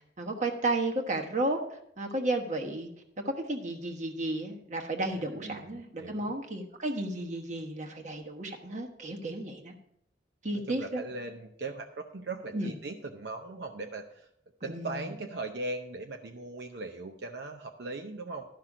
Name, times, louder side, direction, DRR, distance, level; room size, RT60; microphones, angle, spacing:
voice 1, 0.2-2.9 3.2-9.7 10.4-11.0 12.5-12.7 14.6-15.1, right 2 dB, 45° right, 2 dB, 1.2 m, -33 dB
voice 2, 5.1-6.3 10.5-14.3 14.6-18.5, right 3 dB, 70° right, 4 dB, 0.7 m, -39 dB
12.5 x 5.9 x 4.9 m, 0.75 s
head